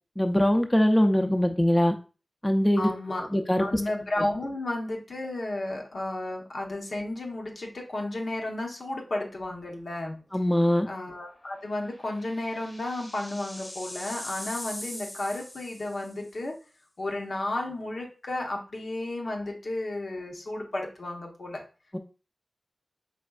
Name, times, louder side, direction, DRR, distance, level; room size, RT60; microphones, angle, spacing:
voice 1, 0.2-1.9 2.4-2.9 3.3-3.7 10.3-10.9 21.9-22.0, equal, 15° left, 5 dB, 0.4 m, -22 dB
voice 2, 2.8-3.3 3.6-10.2 10.9-16.5 17.0-21.6, left 2 dB, 80° left, 0 dB, 0.8 m, -33 dB
sound 1, 9.4-9.8 10.1-10.2 11.6-16.3, left 1 dB, 40° left, 0.8 m, -42 dB
4.2 x 3.3 x 2.3 m, 0.35 s
cardioid pair, 45°, 0 cm